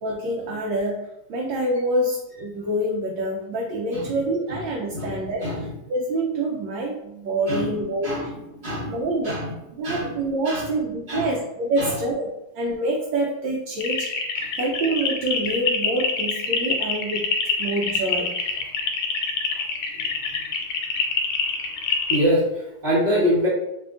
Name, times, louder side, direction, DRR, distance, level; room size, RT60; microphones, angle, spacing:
voice 1, 0.0-5.5 5.9-8.3 8.9-9.4 9.7-12.3 12.5-14.1 14.6-17.3 17.6-18.5, right 1 dB, 70° right, -2 dB, 1.3 m, -26 dB
voice 2, 4.9-5.7 7.5-9.5 9.8-10.1 10.4-10.7 11.1-11.3 11.8-12.0 14.4-14.5 19.5-19.6 20.0-20.1 22.1-23.5, equal, 30° right, -10 dB, 0.8 m, -26 dB
sound 1, 13.8-22.3, left 5 dB, 90° left, 1.5 m, -25 dB
4.9 x 2.7 x 2.5 m, 0.88 s
omnidirectional pair, 2.3 m